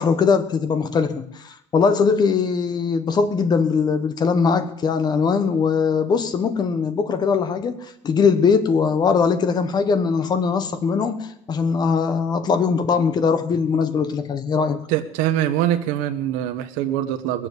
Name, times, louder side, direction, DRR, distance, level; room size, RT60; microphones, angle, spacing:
voice 1, 0.0-7.8 8.0-14.8, left 5 dB, 30° left, 1.2 m, -20 dB
voice 2, 14.9-17.5, right 12 dB, 90° right, 1.1 m, -23 dB
20.5 x 7.5 x 8.1 m
cardioid pair, 155°, 13 cm